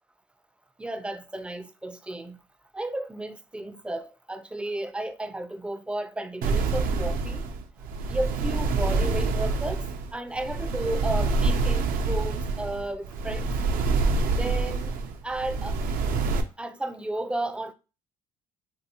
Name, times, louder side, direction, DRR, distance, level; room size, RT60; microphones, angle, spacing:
voice 1, 0.8-2.4 2.7-7.5 8.1-9.8 10.1-13.5 14.4-14.9 15.2-15.8 16.6-17.7, right 1 dB, 5° right, 0.4 m, -33 dB
sound 1, 6.4-16.4, right 3 dB, 70° right, 0.5 m, -26 dB
3.1 x 2.6 x 2.8 m
cardioid pair, 95°, 15 cm